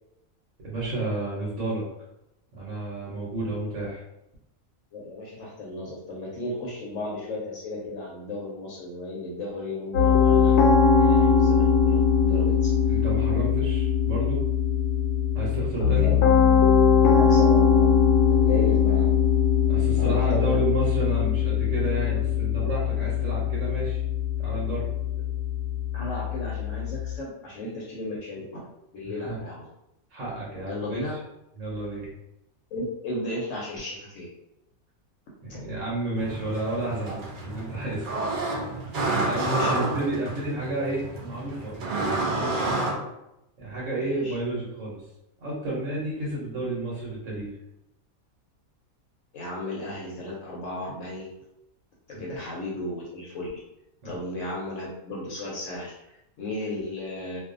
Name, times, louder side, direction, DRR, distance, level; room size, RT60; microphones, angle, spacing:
voice 1, 0.6-1.8 2.6-4.0 12.9-14.4 15.3-16.1 19.7-24.0 24.4-24.9 29.2-29.4 30.1-31.0 31.6-32.1 35.4-38.1 39.2-42.6 43.6-45.0 45.4-47.5 52.1-52.2 54.0-54.1, right 2 dB, 65° right, -6 dB, 1.0 m, -31 dB
voice 2, 4.9-13.0 16.0-16.5 17.1-18.0 18.4-19.2 20.0-20.6 25.9-28.6 28.9-29.7 30.6-31.2 32.7-34.3 39.4-39.9 44.0-44.4 49.3-51.3 52.1-53.5 54.0-57.4, left 2 dB, 70° left, -4 dB, 0.9 m, -34 dB
Piano, 9.9-27.1, left 7 dB, 90° left, 1.1 m, -21 dB
sound 1, 36.2-42.9, right 2 dB, 85° right, 0.4 m, -29 dB
2.5 x 2.3 x 2.4 m, 0.86 s
omnidirectional pair, 1.5 m